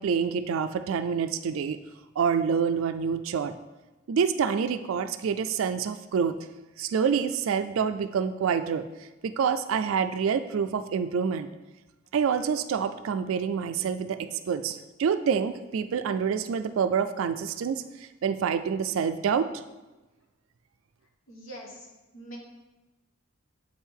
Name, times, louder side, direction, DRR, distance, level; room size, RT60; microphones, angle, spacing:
voice 1, 0.0-1.8 2.2-3.5 4.1-6.3 6.8-8.8 9.2-11.5 12.1-17.8 18.2-19.5, right 6 dB, 70° right, 10 dB, 0.3 m, -27 dB
voice 2, 21.3-21.9 22.1-22.4, right 1 dB, 75° left, -1 dB, 1.4 m, -43 dB
7.5 x 4.5 x 3.7 m, 1.1 s
head